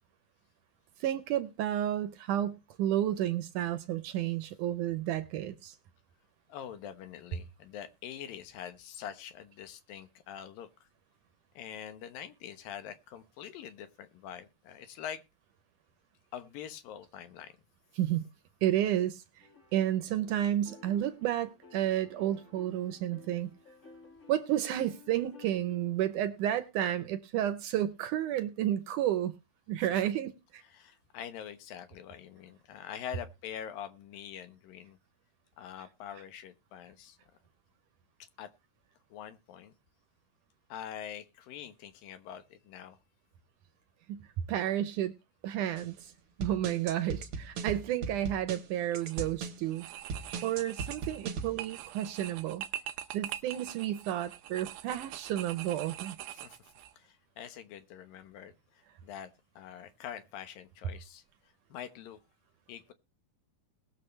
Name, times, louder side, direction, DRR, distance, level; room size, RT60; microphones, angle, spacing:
voice 1, 1.0-5.8 18.0-18.3 18.6-19.2 19.7-23.5 24.3-29.3 29.7-30.6 44.1-45.1 45.4-46.1 46.4-49.8 50.4-52.7 53.1-56.2, right 12 dB, 75° right, 2.1 m, -31 dB
voice 2, 6.5-10.7 11.6-15.2 16.3-17.5 29.8-30.0 30.7-35.0 35.6-37.2 38.4-38.5 39.1-39.7 40.7-43.0 56.3-56.6 56.9-61.2 61.7-62.2 62.7-62.9, left 9 dB, 75° left, 2.9 m, -44 dB
sound 1, 19.4-26.0, left 4 dB, 25° left, 1.8 m, -55 dB
sound 2, 45.8-45.9 46.4-49.6 50.1-51.6, right 5 dB, 60° right, 1.5 m, -38 dB
sound 3, 48.9-49.3 49.7-56.9, right 12 dB, 90° right, 2.6 m, -43 dB
20.0 x 7.1 x 3.2 m
omnidirectional pair, 4.1 m